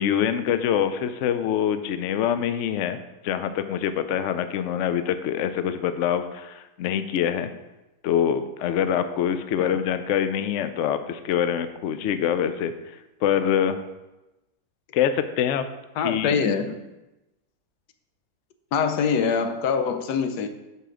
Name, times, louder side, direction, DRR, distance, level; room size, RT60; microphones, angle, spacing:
voice 1, 0.0-3.0 3.2-7.5 8.0-12.7 13.2-13.8 14.9-15.6 16.0-16.4, left 9 dB, 70° left, 10 dB, 0.7 m, -25 dB
voice 2, 16.0-16.8 18.7-20.5, left 6 dB, 85° left, 8 dB, 1.2 m, -24 dB
8.2 x 5.8 x 3.8 m, 1.0 s
omnidirectional pair, 1.7 m